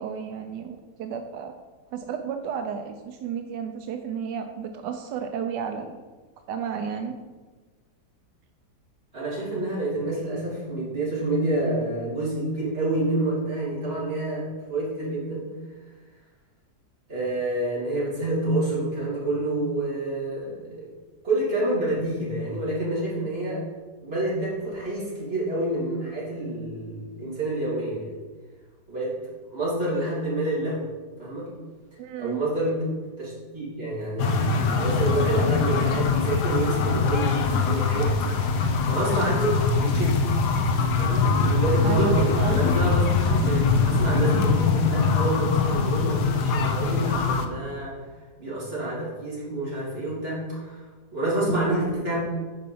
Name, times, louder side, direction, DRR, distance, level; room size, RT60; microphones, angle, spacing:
voice 1, 0.0-1.5 1.9-6.0 6.5-7.2 32.0-32.4 41.8-42.8, right 7 dB, 85° right, 6 dB, 1.2 m, -32 dB
voice 2, 9.1-15.5 17.1-20.9 21.2-23.6 24.0-28.1 28.9-29.1 29.5-30.8 31.2-31.5 31.9-38.5 38.9-40.3 41.0-48.0 48.4-50.9 51.1-52.2, right 1 dB, 35° right, -6 dB, 3.2 m, -28 dB
sound 1, 34.2-47.5, left 4 dB, 75° left, 1.4 m, -23 dB
9.4 x 5.3 x 5.5 m, 1.3 s
omnidirectional pair, 1.8 m